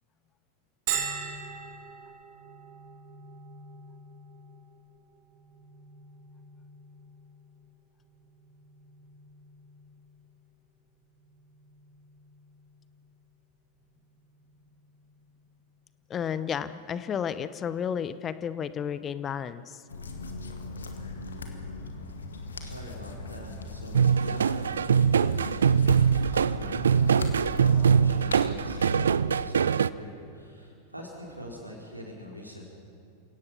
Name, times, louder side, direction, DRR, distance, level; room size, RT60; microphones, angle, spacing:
Bell, 0.9-16.3, right 7 dB, 50° right, 2.6 m, -43 dB
voice 1, 16.1-19.8, left 8 dB, 25° left, 14 dB, 0.8 m, -32 dB
sound 1, 19.9-29.1, left 2 dB, 70° left, 2.0 m, -38 dB
voice 2, 22.5-26.0 26.3-32.8, equal, 85° right, -1 dB, 4.3 m, -43 dB
sound 2, 23.9-29.9, right 7 dB, 70° right, 0.4 m, -23 dB
28.5 x 17.5 x 5.9 m, 2.6 s
figure-of-eight pair, 90°, 0 cm